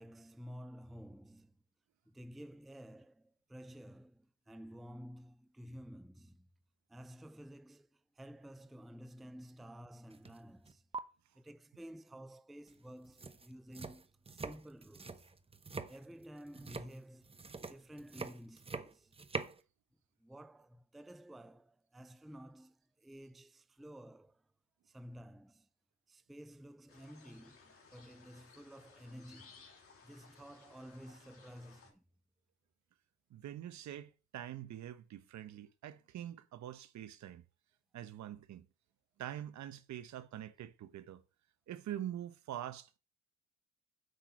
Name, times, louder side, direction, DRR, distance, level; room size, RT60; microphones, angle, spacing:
voice 1, 0.0-1.5 2.1-6.5 6.9-10.8 11.4-15.3 15.9-17.3 17.6-19.1 20.2-24.4 24.9-25.7 26.1-29.6 30.0-32.0, equal, ahead, 0.4 m, -52 dB
sound 1, 10.1-10.4 10.7-11.0 12.7-12.8 13.1-19.6, right 4 dB, 20° right, 0.8 m, -44 dB
sound 2, 26.9-31.9, left 5 dB, 45° left, 3.0 m, -61 dB
voice 2, 33.3-37.4 37.9-38.7 39.2-41.2 41.7-43.0, right 11 dB, 65° right, 1.0 m, -45 dB
7.9 x 6.0 x 5.1 m
cardioid pair, 90°, 30 cm